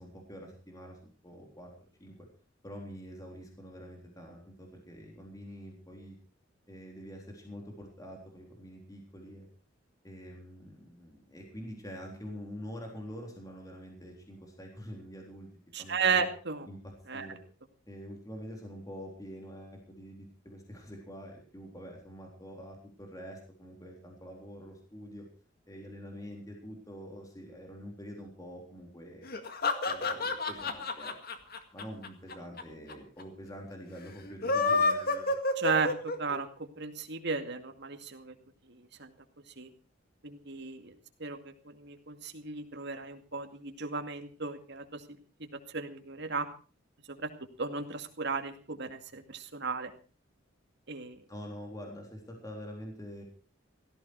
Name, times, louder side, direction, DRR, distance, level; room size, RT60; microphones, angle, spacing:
voice 1, 0.0-1.7 2.0-2.1 2.6-6.2 6.7-9.5 10.0-15.5 15.8-16.3 16.7-17.4 17.9-25.3 25.7-29.3 29.8-31.1 31.7-35.3 51.3-53.2, equal, 20° left, 0 dB, 3.8 m, -46 dB
voice 2, 15.7-16.7 17.1-17.3 35.6-38.3 38.7-39.1 39.6-39.7 40.2-40.9 41.2-45.0 45.7-46.5 47.2-47.3 47.6-49.9 50.9-51.2, right 5 dB, 60° right, 6 dB, 2.3 m, -34 dB
sound 1, 29.3-32.6 32.9-33.0 33.2-33.3 34.3-36.4, left 3 dB, 50° left, 2.0 m, -29 dB
17.0 x 14.5 x 4.7 m, 0.38 s
head